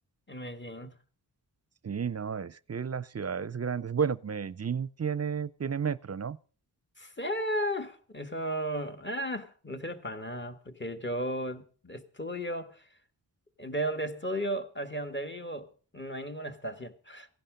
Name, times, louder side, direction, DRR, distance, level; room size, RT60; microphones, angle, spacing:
voice 1, 0.3-0.9 7.0-12.9 13.6-17.3, equal, 30° left, 1.9 m, -35 dB
voice 2, 1.8-6.4, right 7 dB, 40° right, 0.6 m, -32 dB
16.5 x 11.5 x 5.2 m
wide cardioid pair, 65°, 39 cm